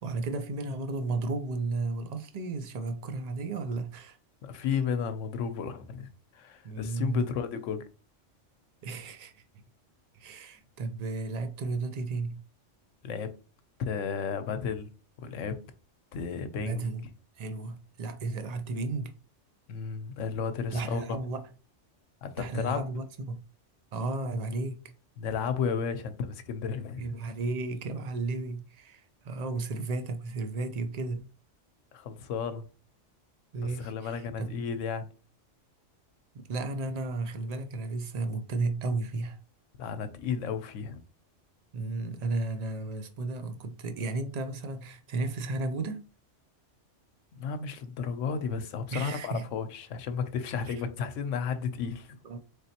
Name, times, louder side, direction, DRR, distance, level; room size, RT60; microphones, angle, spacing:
voice 1, 0.0-4.2 6.6-7.3 8.8-9.4 10.1-12.4 16.6-17.0 17.4-19.1 20.7-21.4 22.4-23.4 23.9-24.9 27.0-31.3 33.5-34.5 36.3-39.4 41.7-46.0 48.9-49.5 50.6-50.7 52.2-52.4, right 3 dB, 60° right, 0.4 m, -33 dB
voice 2, 4.4-7.8 13.0-13.3 13.8-14.9 15.2-15.6 16.1-16.9 19.7-21.0 22.2-22.8 25.2-27.1 31.9-32.7 33.6-35.1 39.8-41.0 47.4-52.2, left 6 dB, 85° left, 1.0 m, -33 dB
4.1 x 3.4 x 2.8 m
omnidirectional pair, 1.3 m